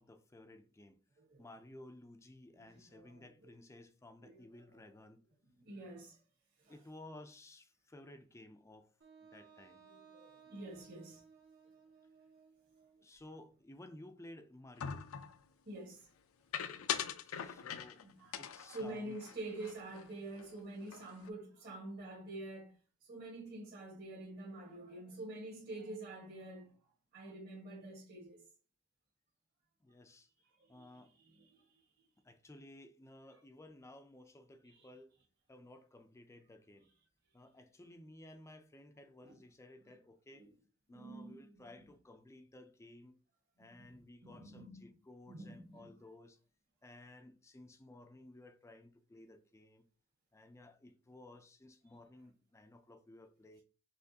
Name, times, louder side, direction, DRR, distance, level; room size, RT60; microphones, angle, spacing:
voice 1, 0.0-1.0 1.4-5.2 6.7-8.9 9.2-9.8 13.0-15.1 17.2-18.0 18.4-19.2 29.8-30.3 30.7-31.1 32.2-35.1 35.5-36.9 37.3-40.5 40.9-43.2 43.6-46.4 46.8-49.8 50.3-53.6, left 1 dB, 15° left, 0.4 m, -56 dB
voice 2, 2.5-3.3 4.2-4.8 5.6-6.2 6.6-6.8 9.8-11.2 15.7-16.1 18.0-26.7 27.1-28.4 30.6-31.7 34.6-34.9 39.2-39.3 40.3-40.5 40.9-41.6 43.6-44.0 44.2-44.8 45.3-45.9, right 2 dB, 50° right, 1.4 m, -48 dB
Wind instrument woodwind instrument, 9.0-13.0, right 6 dB, 80° right, 1.7 m, -61 dB
sound 1, 14.8-15.4 16.5-18.0 18.3-20.1 20.4-20.5 20.8-21.3, left 8 dB, 80° left, 0.5 m, -42 dB
5.7 x 3.2 x 2.7 m
head